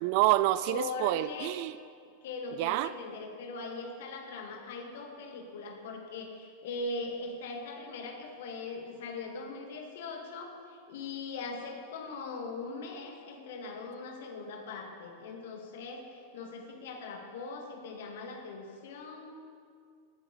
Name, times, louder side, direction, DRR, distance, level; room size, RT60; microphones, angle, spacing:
voice 1, 0.0-1.7 2.6-2.9, right 16 dB, 45° right, 16 dB, 0.4 m, -27 dB
voice 2, 0.7-1.5 2.2-19.3, left 3 dB, 55° left, 2 dB, 2.2 m, -40 dB
18.0 x 11.0 x 4.2 m, 2.2 s
figure-of-eight pair, 90°, 0 cm